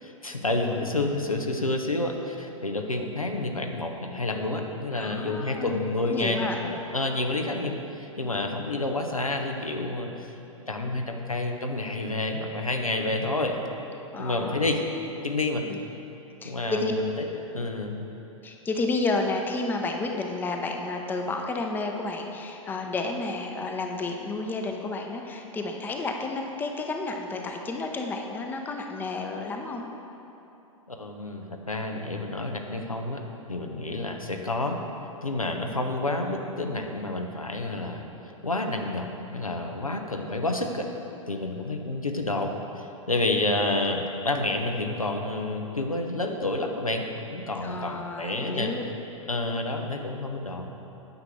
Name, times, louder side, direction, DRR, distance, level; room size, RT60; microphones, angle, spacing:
voice 1, 0.0-10.3 10.7-13.6 14.2-14.8 15.2-15.6 16.4-17.3 17.5-18.1 30.9-33.2 33.5-34.8 35.2-38.1 38.4-40.9 41.3-48.7 49.3-50.7, left 2 dB, 85° left, 3 dB, 0.9 m, -29 dB
voice 2, 4.9-6.6 14.1-14.7 15.7-15.8 16.4-16.9 18.4-29.8 47.6-48.8, left 3 dB, 10° left, 3 dB, 0.7 m, -31 dB
9.4 x 6.1 x 6.8 m, 3.0 s
figure-of-eight pair, 100°, 17 cm